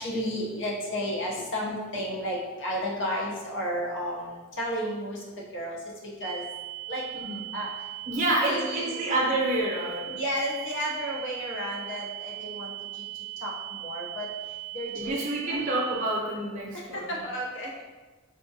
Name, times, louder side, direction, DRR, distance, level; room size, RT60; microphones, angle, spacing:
voice 1, 0.0-5.2 5.5-5.8 6.2-6.4 6.9-7.0 7.5-7.7 8.2-9.0 10.1-12.7 13.4-13.5 13.8-14.3 14.7-15.2 15.5-15.6 16.9-17.8, equal, 65° left, -3 dB, 0.7 m, -32 dB
sound 1, 6.2-16.2, right 19 dB, 20° left, 0.5 m, -39 dB
voice 2, 8.0-10.2 14.9-17.2, right 1 dB, 35° right, -3 dB, 0.7 m, -28 dB
4.2 x 2.3 x 2.7 m, 1.3 s
head